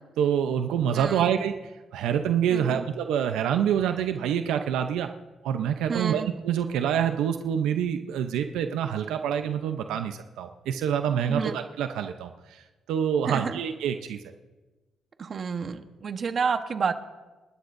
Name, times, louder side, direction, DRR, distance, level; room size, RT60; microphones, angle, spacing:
voice 1, 0.2-5.1 5.4-14.2, right 8 dB, 85° right, 7 dB, 0.7 m, -26 dB
voice 2, 0.9-1.3 2.5-2.8 5.9-6.3 11.3-11.5 13.3-13.5 15.2-16.9, right 6 dB, 45° right, 8 dB, 1.2 m, -29 dB
29.5 x 11.5 x 2.7 m, 1.2 s
cardioid pair, 85°, 0 cm